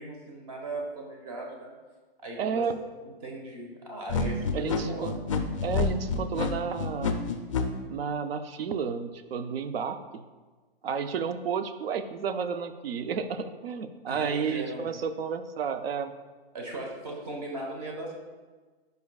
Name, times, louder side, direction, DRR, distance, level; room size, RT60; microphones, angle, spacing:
voice 1, 0.0-1.7 2.2-2.7 3.0-5.4 14.1-14.9 16.5-18.1, right 2 dB, 40° right, 0 dB, 1.1 m, -38 dB
voice 2, 2.4-2.8 4.5-5.1 5.6-7.2 7.9-10.2 10.8-16.1, right 6 dB, 70° right, 10 dB, 0.6 m, -31 dB
sound 1, 4.1-7.6, left 5 dB, 30° left, 0.4 m, -28 dB
9.2 x 5.2 x 2.3 m, 1.3 s
hypercardioid pair, 165°, 31 cm